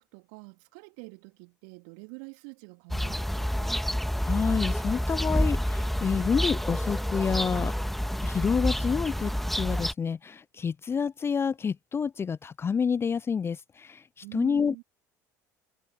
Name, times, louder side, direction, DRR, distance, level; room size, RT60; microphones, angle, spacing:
voice 1, 0.0-3.8 14.2-14.8, right 39 dB, 65° right, 3.2 m, -46 dB
sound 1, 2.9-9.9, equal, ahead, 1.8 m, -28 dB
voice 2, 4.2-7.7 8.2-14.0 14.3-14.8, left 6 dB, 25° left, 0.5 m, -28 dB
figure-of-eight pair, 65°, 10 cm